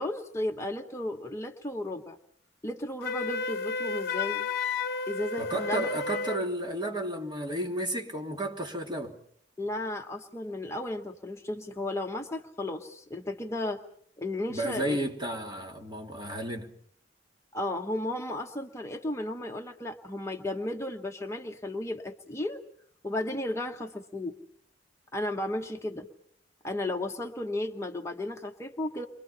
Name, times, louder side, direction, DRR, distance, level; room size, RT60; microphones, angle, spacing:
voice 1, 0.0-2.2 2.6-4.5 5.1-5.9 9.6-13.8 14.2-15.0 17.5-22.6 23.0-24.3 25.1-26.1 26.6-29.1, left 1 dB, 15° left, 1.1 m, -34 dB
Wind instrument woodwind instrument, 3.0-6.4, left 4 dB, 60° left, 1.0 m, -32 dB
voice 2, 5.4-9.1 14.5-16.7, right 1 dB, 25° right, 3.0 m, -32 dB
29.5 x 24.0 x 5.6 m
head